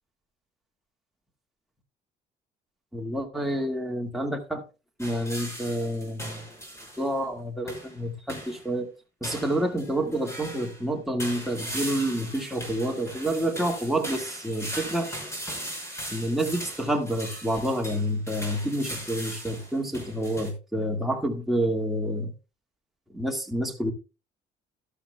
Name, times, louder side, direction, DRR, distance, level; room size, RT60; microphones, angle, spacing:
voice 1, 2.9-4.6 5.0-6.4 7.0-8.9 9.2-15.2 16.1-22.3 23.1-23.9, right 1 dB, ahead, 1.8 m, -28 dB
sound 1, 5.0-7.1 7.7-8.0 8.3-8.7 9.2-10.8 11.2-20.5, right 1 dB, 15° left, 5.6 m, -38 dB
12.5 x 12.0 x 2.2 m
cardioid pair, 110°, 17 cm